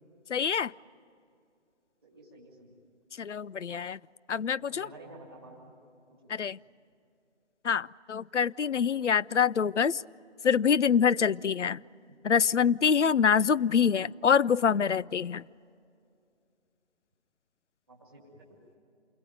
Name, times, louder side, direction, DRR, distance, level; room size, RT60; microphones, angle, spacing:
voice 1, 0.3-0.7 3.2-4.0 4.3-4.9 6.3-6.6 7.6-10.0 10.4-11.8 12.2-15.4, left 7 dB, 80° left, 20 dB, 0.6 m, -25 dB
voice 2, 2.0-2.7 4.6-5.7 17.9-18.6, right 2 dB, ahead, -1 dB, 2.1 m, -51 dB
28.0 x 22.0 x 9.4 m, 2.5 s
figure-of-eight pair, 170°, 35 cm